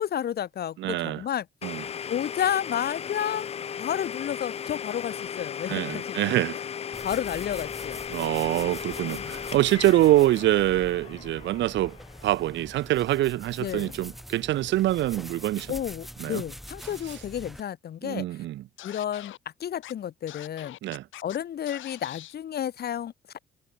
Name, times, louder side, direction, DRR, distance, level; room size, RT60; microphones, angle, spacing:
voice 1, 0.0-1.5 2.1-3.5 3.8-6.2 7.0-8.1 9.0-9.4 13.6-14.0 15.7-18.3 18.8-19.3 19.6-20.8 21.2-23.4, left 10 dB, 55° left, 0.9 m, -31 dB
voice 2, 0.8-1.2 1.6-1.8 5.7-6.6 8.1-12.0 12.2-15.7 16.2-16.4 18.0-18.6 20.8-21.0, right 15 dB, 65° right, 0.4 m, -25 dB
Domestic sounds home sounds, 1.6-13.3, left 8 dB, 30° left, 0.4 m, -37 dB
sound 1, 6.9-17.6, equal, ahead, 5.2 m, -44 dB
Scratching (performance technique), 18.8-19.4 19.8-19.9 20.3-21.4 21.7-22.3, left 14 dB, 75° left, 1.0 m, -43 dB
cardioid pair, 90°, 20 cm